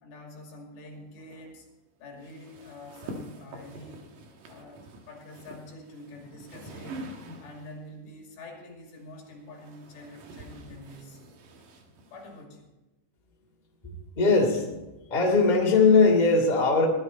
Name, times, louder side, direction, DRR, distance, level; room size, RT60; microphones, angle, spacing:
voice 1, 0.0-1.7 2.0-4.1 4.5-7.0 7.4-11.2 12.1-12.7, left 1 dB, 70° left, 1 dB, 4.6 m, -46 dB
sound 1, 2.2-7.8 8.9-12.4, right 2 dB, 60° right, 2.5 m, -45 dB
voice 2, 13.8-14.8 15.1-16.9, left 4 dB, 10° left, -1 dB, 2.2 m, -21 dB
18.5 x 12.5 x 4.2 m, 1.0 s
omnidirectional pair, 5.5 m